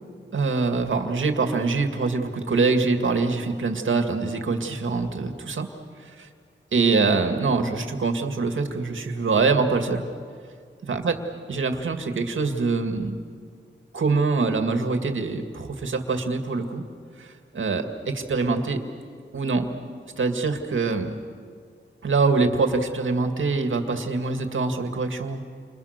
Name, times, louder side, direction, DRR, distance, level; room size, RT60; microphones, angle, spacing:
voice 1, 0.3-5.7 6.0-6.3 6.7-10.0 10.9-11.2 11.5-13.2 13.9-16.8 17.2-18.8 19.3-19.7 20.2-21.1 22.0-25.4, right 4 dB, 85° right, 5 dB, 2.2 m, -24 dB
30.0 x 26.0 x 6.7 m, 2.1 s
wide cardioid pair, 125°, 20 cm